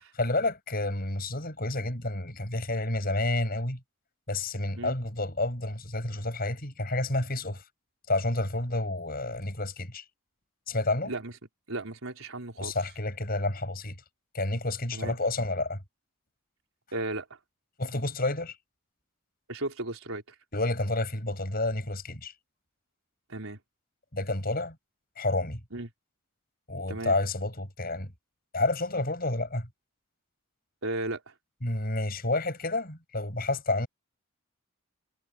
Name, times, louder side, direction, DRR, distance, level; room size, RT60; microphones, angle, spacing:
voice 1, 0.2-3.8 4.3-7.6 8.1-10.0 10.7-11.1 12.6-14.0 14.3-15.8 17.8-18.6 20.5-22.3 24.1-24.8 25.2-25.6 26.7-28.1 28.5-29.7 31.6-33.9, left 2 dB, 45° left, 7.4 m, -30 dB
voice 2, 11.7-12.7 14.9-15.1 16.9-17.4 19.5-20.2 23.3-23.6 25.7-25.9 26.9-27.1 30.8-31.3, right 2 dB, 85° right, 4.3 m, -35 dB
head